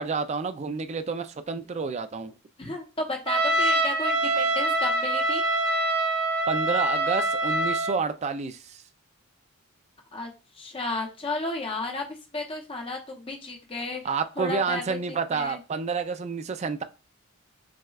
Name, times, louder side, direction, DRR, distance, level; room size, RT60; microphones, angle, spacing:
voice 1, 0.0-2.3 6.5-8.8 14.0-16.8, right 5 dB, 30° right, 0.3 m, -29 dB
voice 2, 2.6-5.4 10.1-10.3 10.6-12.1 12.3-14.0 14.4-15.0 15.3-15.6, left 2 dB, 25° left, 0.8 m, -33 dB
Trumpet, 3.3-8.0, right 2 dB, 50° right, 0.7 m, -25 dB
6.1 x 2.3 x 2.3 m
head